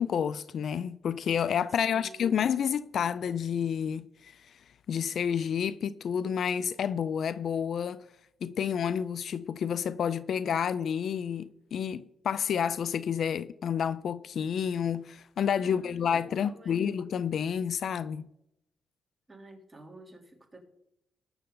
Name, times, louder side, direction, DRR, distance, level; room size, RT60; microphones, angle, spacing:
voice 1, 0.0-4.3 4.9-8.0 8.4-18.3, left 8 dB, 65° left, 0.5 m, -30 dB
voice 2, 1.8-2.4 15.6-17.0 19.3-20.6, right 1 dB, 15° right, 3.3 m, -50 dB
20.0 x 6.8 x 3.9 m
cardioid pair, 80°, 0 cm